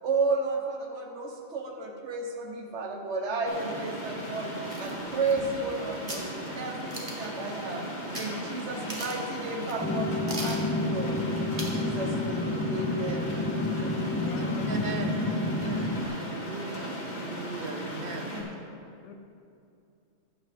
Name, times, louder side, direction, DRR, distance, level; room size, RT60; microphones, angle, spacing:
voice 1, 0.0-4.5 4.8-7.8 8.2-11.2 11.5-14.0, right 3 dB, 75° right, 2 dB, 1.3 m, -33 dB
sound 1, 3.4-18.4, equal, 55° left, 2.0 m, -37 dB
sound 2, 4.7-5.7 6.1-6.3 6.9-7.3 8.1-8.3 8.6-8.7 8.9-9.3 9.7-9.8 10.3-10.6 11.6-11.8 12.2-12.3, right 1 dB, 30° right, 1.5 m, -38 dB
sound 3, 9.8-16.0, left 2 dB, 20° left, 0.3 m, -30 dB
voice 2, 14.0-14.7 18.2-18.5 19.0-19.1, left 4 dB, 80° left, 6 dB, 1.1 m, -41 dB
voice 3, 14.5-18.4, right 4 dB, 55° right, 5 dB, 0.9 m, -39 dB
9.6 x 5.3 x 7.5 m, 2.5 s
omnidirectional pair, 1.2 m